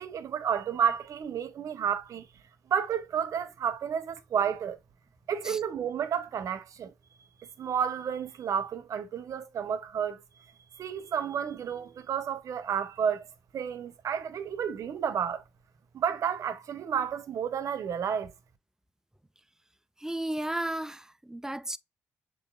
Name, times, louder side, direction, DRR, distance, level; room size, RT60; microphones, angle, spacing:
voice 1, 0.0-2.3 2.7-4.8 5.3-6.9 7.4-10.2 10.8-13.3 13.5-15.4 15.9-18.3, right 8 dB, 60° right, 0.9 m, -31 dB
voice 2, 20.0-21.8, right 1 dB, 10° right, 0.5 m, -34 dB
7.2 x 3.2 x 2.3 m
hypercardioid pair, 50°, 6 cm